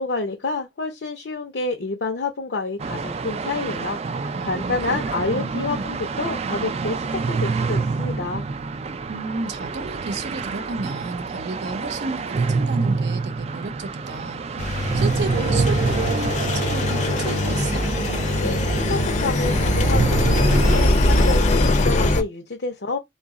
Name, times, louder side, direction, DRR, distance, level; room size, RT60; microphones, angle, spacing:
voice 1, 0.0-8.4 18.4-23.0, left 3 dB, 75° left, 0.7 m, -28 dB
sound 1, 2.8-20.9, right 4 dB, 35° right, 0.3 m, -27 dB
voice 2, 4.4-5.9 9.1-17.9, right 3 dB, 75° right, 0.6 m, -33 dB
Engine, 14.6-22.2, left 2 dB, 40° left, 0.6 m, -21 dB
3.9 x 2.4 x 3.6 m
head